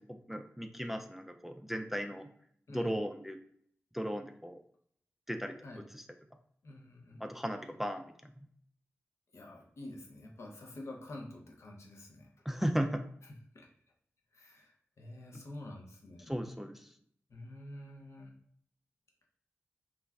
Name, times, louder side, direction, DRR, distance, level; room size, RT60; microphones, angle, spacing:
voice 1, 0.0-2.3 2.7-3.4 3.9-4.6 5.3-6.0 7.2-8.0 12.5-13.0 16.3-16.8, equal, 5° right, 6 dB, 0.3 m, -36 dB
voice 2, 6.6-7.2 9.3-12.2 13.5-13.7 14.4-14.7 15.0-16.3 17.3-18.3, left 1 dB, 65° left, 0 dB, 0.6 m, -48 dB
2.4 x 2.1 x 3.4 m, 0.64 s
cardioid pair, 45°, 5 cm